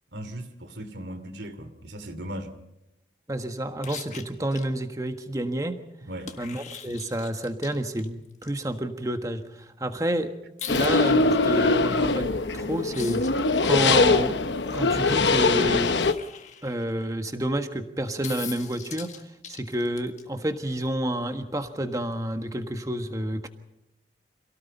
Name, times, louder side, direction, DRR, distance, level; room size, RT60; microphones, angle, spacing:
voice 1, 0.1-2.5 6.1-6.4, equal, 80° right, 9 dB, 2.8 m, -37 dB
voice 2, 3.3-5.8 6.4-10.3 10.7-13.2 13.6-14.4 14.7-16.0 16.6-19.2 19.5-23.5, right 1 dB, 20° right, 7 dB, 1.5 m, -29 dB
sound 1, 3.8-4.7 6.2-8.5 10.6-11.2 12.9-14.2 16.0-17.1 18.2-20.2 22.1-22.2, left 8 dB, 40° left, 1.7 m, -41 dB
sound 2, 10.7-16.1, left 3 dB, 90° left, 1.1 m, -22 dB
27.5 x 17.5 x 5.5 m, 0.90 s
head